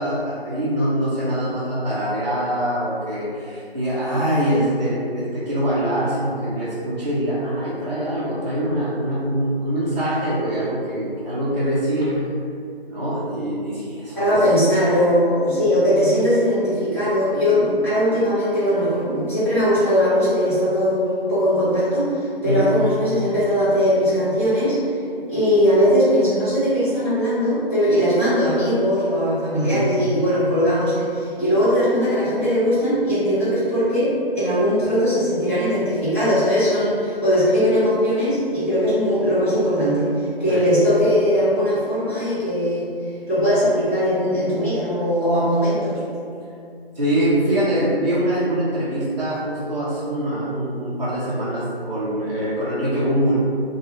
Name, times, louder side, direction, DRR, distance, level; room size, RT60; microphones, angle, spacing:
voice 1, 0.0-12.2 12.9-14.4 22.4-22.7 29.6-29.9 40.5-40.6 47.0-53.4, right 1 dB, 45° right, -10 dB, 0.5 m, -23 dB
voice 2, 14.1-24.7 25.3-42.9 43.3-46.0, equal, 15° left, -19 dB, 0.9 m, -20 dB
3.1 x 2.2 x 2.8 m, 2.5 s
figure-of-eight pair, 175°, 31 cm